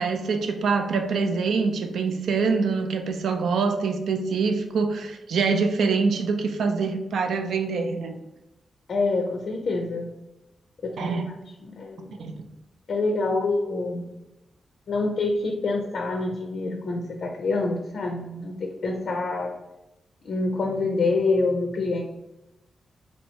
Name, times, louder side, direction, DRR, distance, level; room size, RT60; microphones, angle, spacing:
voice 1, 0.0-8.1 11.0-11.3 12.2-12.3, right 4 dB, 80° right, 6 dB, 0.4 m, -25 dB
voice 2, 8.9-10.1 10.8-11.2 11.6-12.1 12.9-14.1 14.9-19.6 20.2-22.0, left 3 dB, 55° left, 2 dB, 0.5 m, -26 dB
3.1 x 2.7 x 4.3 m, 0.94 s
wide cardioid pair, 145°, 0 cm